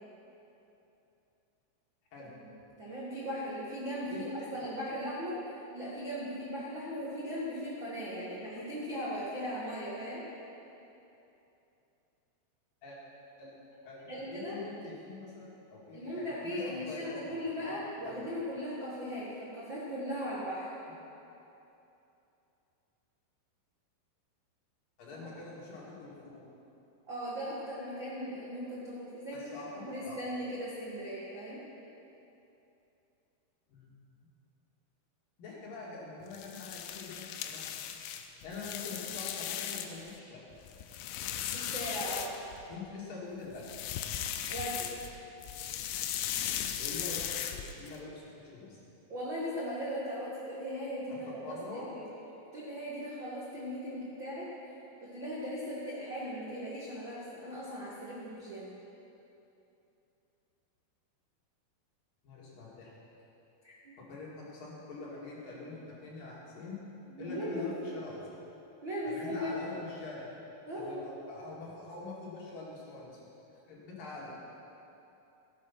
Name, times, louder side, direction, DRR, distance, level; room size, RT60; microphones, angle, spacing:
voice 1, 2.8-10.2 14.1-14.6 15.9-20.7 25.1-25.2 27.1-31.6 41.5-42.3 44.5-44.9 49.1-52.1 52.5-54.5 55.0-58.8 63.6-63.9 67.1-67.9 68.8-69.7 70.6-71.1, equal, 85° right, -8 dB, 1.0 m, -38 dB
voice 2, 13.8-17.7 18.0-18.2 25.0-26.4 29.3-30.2 33.7-34.1 35.4-37.6 38.4-40.4 42.7-43.7 46.8-48.8 51.1-51.9 62.2-62.9 64.0-66.8 67.2-68.2 69.0-70.3 70.7-73.2 73.7-74.3, left 3 dB, 55° left, -5 dB, 3.3 m, -45 dB
sound 1, 36.3-40.1 40.5-42.8 43.5-45.1 45.4-48.0, left 10 dB, 85° left, 3.0 m, -37 dB
16.5 x 8.2 x 5.8 m, 2.9 s
omnidirectional pair, 5.3 m